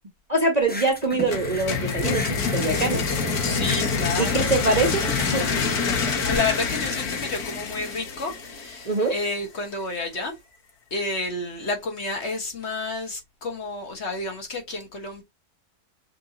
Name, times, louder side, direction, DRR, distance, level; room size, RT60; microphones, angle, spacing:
voice 1, 0.3-3.1 4.2-5.0 5.3-5.5 8.8-9.2, right 3 dB, 35° right, 0.7 m, -23 dB
sound 1, 0.6-6.4, left 1 dB, 15° left, 0.3 m, -35 dB
sound 2, 1.3-9.1, left 5 dB, 75° left, 1.6 m, -26 dB
voice 2, 3.4-4.5 5.3-10.3 10.9-15.2, left 3 dB, 50° left, 1.3 m, -30 dB
6.0 x 2.6 x 2.7 m
omnidirectional pair, 1.6 m